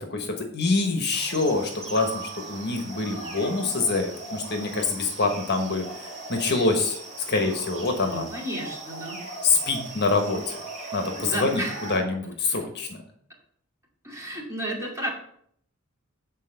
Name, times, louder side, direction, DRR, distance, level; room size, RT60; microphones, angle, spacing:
voice 1, 0.5-2.2 2.5-5.8 6.3-7.0 7.3-8.3 9.4-10.4 10.9-12.9, left 3 dB, 50° left, 4 dB, 1.2 m, -25 dB
sound 1, 1.1-12.0, right 2 dB, 35° right, 2.3 m, -39 dB
sound 2, 2.0-3.2, right 4 dB, 75° left, 0.9 m, -39 dB
voice 2, 8.0-9.2 11.1-11.8 14.0-15.1, right 1 dB, 15° right, -4 dB, 2.6 m, -32 dB
8.2 x 4.3 x 6.6 m, 0.66 s
head